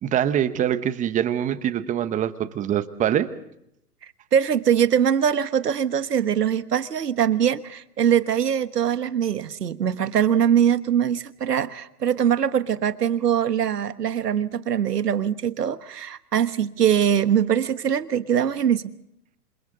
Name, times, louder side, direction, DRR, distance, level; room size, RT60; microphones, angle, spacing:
voice 1, 0.0-3.3, right 10 dB, 15° right, 13 dB, 1.0 m, -24 dB
voice 2, 4.3-18.9, right 9 dB, 80° right, 12 dB, 1.4 m, -22 dB
27.0 x 26.5 x 3.9 m, 0.78 s
hypercardioid pair, 125°, 47 cm